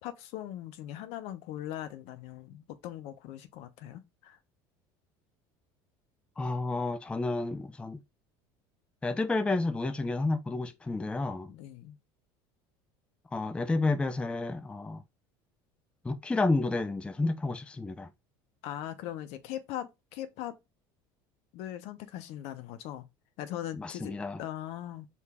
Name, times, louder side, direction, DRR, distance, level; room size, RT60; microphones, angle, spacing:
voice 1, 0.0-4.4 11.5-12.0 18.6-20.5 21.5-23.0 23.4-24.1 24.4-25.1, left 12 dB, 70° left, 0.8 m, -40 dB
voice 2, 6.4-8.0 9.0-11.5 13.3-15.0 16.0-18.1 23.8-24.4, left 3 dB, 10° left, 0.4 m, -30 dB
4.8 x 2.7 x 3.5 m
supercardioid pair, 120°, 11 cm